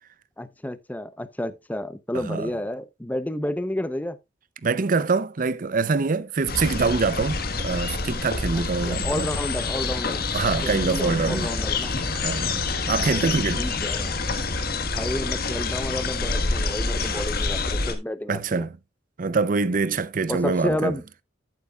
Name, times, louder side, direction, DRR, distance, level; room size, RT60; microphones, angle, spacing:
voice 1, 0.4-4.2 8.5-10.2 10.6-11.9 13.0-13.2 13.6-14.2 14.8-18.7 20.3-21.0, left 1 dB, 10° left, 0.6 m, -31 dB
voice 2, 4.6-9.3 10.3-11.5 12.1-13.6 18.3-18.7 19.2-21.0, right 4 dB, 45° right, 0.6 m, -25 dB
sound 1, 6.5-17.9, left 3 dB, 55° left, 1.4 m, -27 dB
10.5 x 9.0 x 2.3 m
head